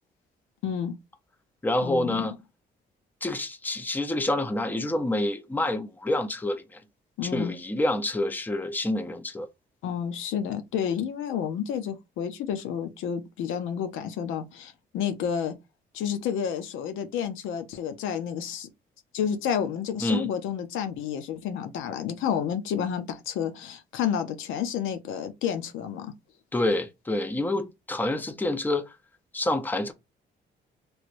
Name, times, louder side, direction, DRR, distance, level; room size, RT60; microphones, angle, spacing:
voice 1, 0.6-0.9 1.8-2.3 7.2-7.5 9.8-15.5 15.9-18.7 19.1-26.1, left 8 dB, 90° left, 0.6 m, -30 dB
voice 2, 1.6-2.3 3.2-6.8 7.2-9.5 20.0-20.3 26.5-28.9 29.3-29.9, left 1 dB, 10° left, 0.5 m, -27 dB
3.2 x 3.0 x 2.5 m
cardioid pair, 90°, 20 cm